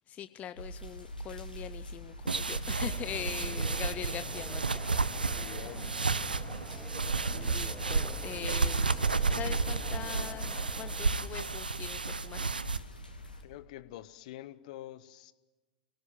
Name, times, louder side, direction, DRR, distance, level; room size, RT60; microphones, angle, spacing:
voice 1, 0.1-5.0 7.3-9.0 9.3-12.5, left 11 dB, 30° left, 13 dB, 0.7 m, -42 dB
sound 1, 0.5-13.4, left 1 dB, 90° left, 2.8 m, -46 dB
sound 2, 2.3-12.8, right 4 dB, 85° right, 0.7 m, -32 dB
sound 3, 2.8-11.1, left 3 dB, 10° left, 2.0 m, -48 dB
voice 2, 5.2-5.9 13.4-15.3, left 14 dB, 55° left, 16 dB, 1.1 m, -46 dB
25.5 x 17.5 x 9.1 m, 1.2 s
figure-of-eight pair, 90°, 5 cm